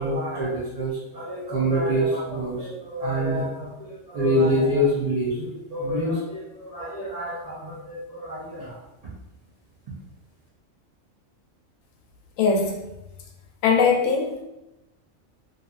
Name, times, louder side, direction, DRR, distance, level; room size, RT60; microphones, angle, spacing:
voice 1, 0.0-8.8, equal, 75° right, -6 dB, 0.3 m, -26 dB
voice 2, 12.4-12.8 13.6-14.4, left 5 dB, 80° left, 1 dB, 1.0 m, -20 dB
2.7 x 2.4 x 2.4 m, 0.94 s
omnidirectional pair, 1.4 m